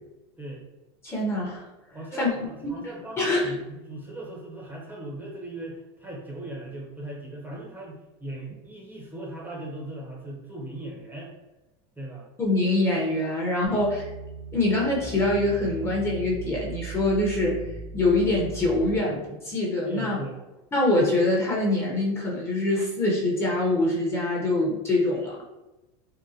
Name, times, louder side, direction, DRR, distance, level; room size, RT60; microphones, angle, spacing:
voice 1, 1.0-1.7 2.2-2.3 2.6-2.8 3.2-3.5 12.4-14.1 14.5-17.6 17.9-20.2 20.7-25.4, left 2 dB, 20° left, -3 dB, 0.8 m, -24 dB
voice 2, 1.9-11.3 12.0-12.2 13.7-13.8 19.8-20.4, right 1 dB, 15° right, -2 dB, 0.7 m, -38 dB
sound 1, 13.6-19.0, right 1 dB, 40° right, 0.8 m, -38 dB
3.7 x 2.1 x 2.7 m, 1.0 s
supercardioid pair, 120°, 14 cm